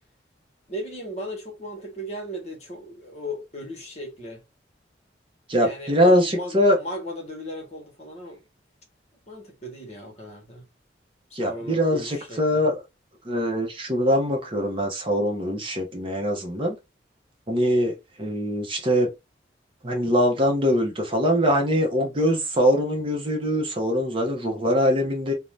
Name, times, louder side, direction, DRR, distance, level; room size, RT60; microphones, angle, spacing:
voice 1, 0.7-4.4 5.6-8.4 9.3-10.6 11.3-12.7, equal, 35° left, 1.0 m, -36 dB
voice 2, 5.5-6.8 11.3-12.8 13.2-16.8 17.5-19.1 19.8-25.3, equal, 30° right, 0.6 m, -22 dB
2.6 x 2.1 x 3.2 m
head